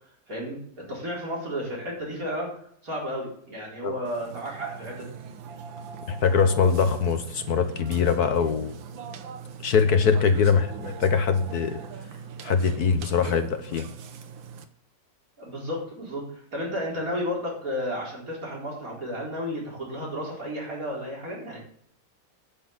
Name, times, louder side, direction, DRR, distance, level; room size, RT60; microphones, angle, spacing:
voice 1, 0.3-2.5 2.8-5.1 15.4-21.6, equal, 45° right, -3 dB, 4.6 m, -32 dB
Burping eructation, 4.1-14.6, right 6 dB, 90° right, 1.7 m, -41 dB
voice 2, 6.1-8.7 9.6-11.8 12.4-13.9, left 6 dB, 60° left, 9 dB, 1.3 m, -22 dB
10.5 x 6.2 x 7.8 m, 0.65 s
omnidirectional pair, 2.0 m